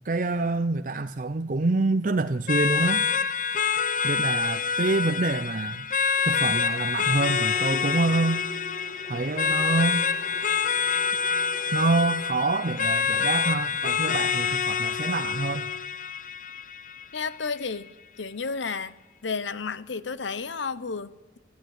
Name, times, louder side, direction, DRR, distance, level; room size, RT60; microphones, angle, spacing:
voice 1, 0.0-3.1 4.0-5.8 6.2-8.5 9.1-10.1 11.7-15.7, right 3 dB, 45° right, 0.6 m, -26 dB
sound 1, 2.5-17.4, left 6 dB, 45° left, 0.7 m, -26 dB
sound 2, 6.2-14.4, left 1 dB, 20° left, 3.7 m, -47 dB
voice 2, 17.1-19.0 19.2-21.4, left 5 dB, 80° left, 0.9 m, -32 dB
22.0 x 14.5 x 9.4 m
head